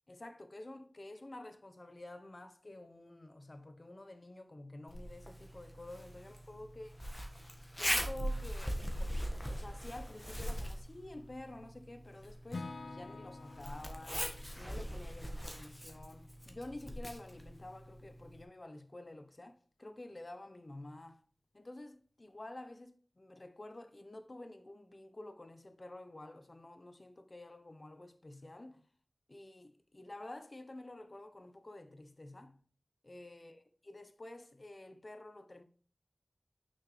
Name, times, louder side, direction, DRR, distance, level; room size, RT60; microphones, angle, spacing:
voice 1, 0.1-6.9 7.8-21.2 21.5-28.9 29.3-32.6 33.0-35.6, left 2 dB, 45° left, 0.9 m, -50 dB
Zipper (clothing), 4.9-18.4, equal, 10° left, 1.5 m, -41 dB
Acoustic guitar / Strum, 12.5-16.5, left 3 dB, 85° left, 0.5 m, -49 dB
6.4 x 5.9 x 3.2 m
wide cardioid pair, 65°, 0 cm